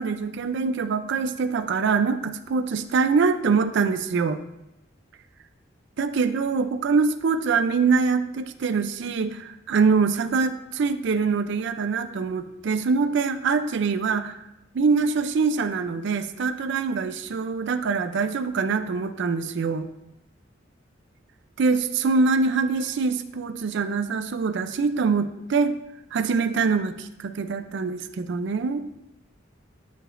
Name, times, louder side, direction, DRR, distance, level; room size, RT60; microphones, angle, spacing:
voice 1, 0.0-4.4 6.0-14.4 14.7-19.9 21.6-25.8 26.1-28.8, right 4 dB, 65° right, 10 dB, 0.4 m, -24 dB
10.0 x 4.9 x 2.5 m, 0.86 s
head